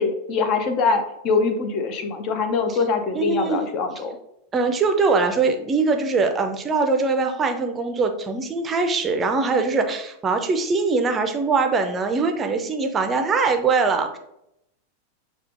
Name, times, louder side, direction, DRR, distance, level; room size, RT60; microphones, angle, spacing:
voice 1, 0.0-4.2, left 4 dB, 40° left, 6 dB, 0.6 m, -23 dB
voice 2, 3.1-3.6 4.5-14.2, right 4 dB, 20° right, 5 dB, 0.5 m, -22 dB
6.5 x 2.4 x 2.5 m, 0.80 s
figure-of-eight pair, 90°, 0 cm